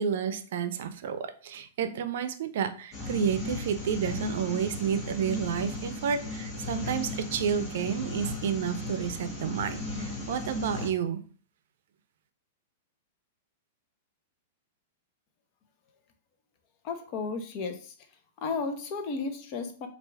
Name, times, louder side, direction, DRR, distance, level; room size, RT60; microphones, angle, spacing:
voice 1, 0.0-11.2, right 7 dB, 70° right, 10 dB, 0.5 m, -30 dB
sound 1, 2.9-10.9, left 2 dB, 25° left, 1.2 m, -36 dB
voice 2, 16.8-17.9 18.4-19.9, left 4 dB, 45° left, 6 dB, 0.7 m, -33 dB
4.5 x 2.4 x 3.3 m, 0.43 s
hypercardioid pair, 130°, 0 cm